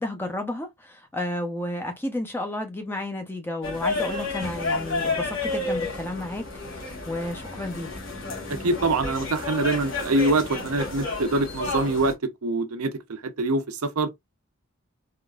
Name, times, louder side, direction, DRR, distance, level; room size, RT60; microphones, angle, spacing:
voice 1, 0.0-7.9, left 1 dB, 10° left, 0.6 m, -32 dB
sound 1, 3.6-12.1, left 3 dB, 60° left, 1.2 m, -31 dB
voice 2, 8.5-12.1 12.4-14.1, right 2 dB, 90° right, 0.7 m, -24 dB
3.6 x 2.5 x 2.3 m
head